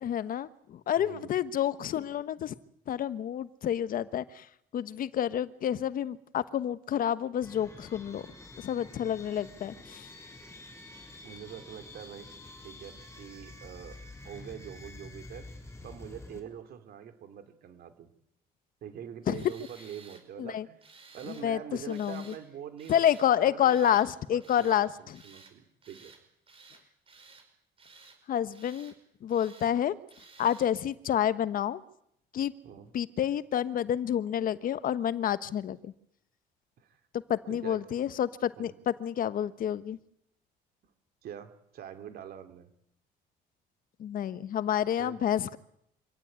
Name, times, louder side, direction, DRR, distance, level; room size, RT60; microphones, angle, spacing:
voice 1, 0.0-2.5 2.9-4.4 4.7-8.3 8.6-10.1 19.3-19.4 20.4-20.6 21.3-21.6 21.9-22.2 22.9-25.2 28.3-28.9 29.2-30.0 30.4-31.8 32.3-32.5 32.9-35.9 37.3-40.0 44.0-45.6, left 10 dB, 55° left, 14 dB, 1.2 m, -29 dB
voice 2, 0.9-1.4 11.2-12.3 12.6-14.0 14.2-15.5 15.8-18.1 18.8-20.8 21.1-26.1 32.6-32.9 36.8-36.9 37.5-37.8 38.6-38.7 41.2-42.7 45.0-45.2, right 9 dB, 65° right, 9 dB, 3.2 m, -44 dB
sound 1, 7.4-16.4, left 2 dB, 15° left, 6.3 m, -48 dB
Tools, 19.3-20.2 20.8-21.5 21.9-22.4 22.8-23.3 23.6-24.1 24.4-24.9 25.1-25.5 25.8-26.2 26.5-27.5 27.8-28.2 28.5-29.0 29.3-29.7 30.1-30.7, right 4 dB, 35° right, 5.2 m, -54 dB
25.5 x 16.5 x 9.6 m, 0.75 s
cardioid pair, 110°, 17 cm